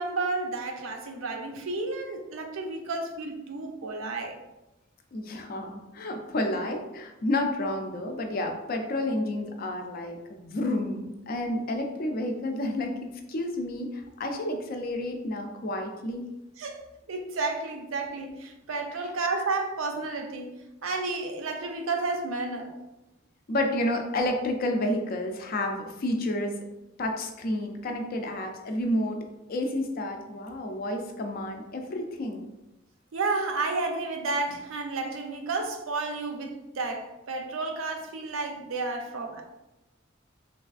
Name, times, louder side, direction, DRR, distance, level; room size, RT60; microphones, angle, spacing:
voice 1, 0.0-4.4 16.6-16.8 17.1-20.5 20.8-22.8 33.1-39.4, right 3 dB, 85° right, 4 dB, 0.5 m, -31 dB
voice 2, 5.1-16.2 23.5-26.6 27.0-29.2 29.5-32.4, left 1 dB, 45° left, 4 dB, 0.4 m, -30 dB
3.3 x 2.4 x 2.4 m, 0.99 s
head